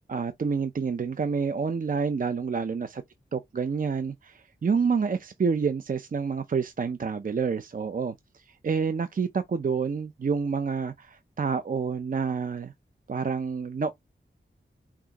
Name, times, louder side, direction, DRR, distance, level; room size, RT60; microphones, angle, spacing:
voice 1, 0.1-3.0 3.3-12.7 13.1-13.9, right 5 dB, 45° right, 0.5 m, -28 dB
5.9 x 2.5 x 2.9 m
wide cardioid pair, 75°, 19 cm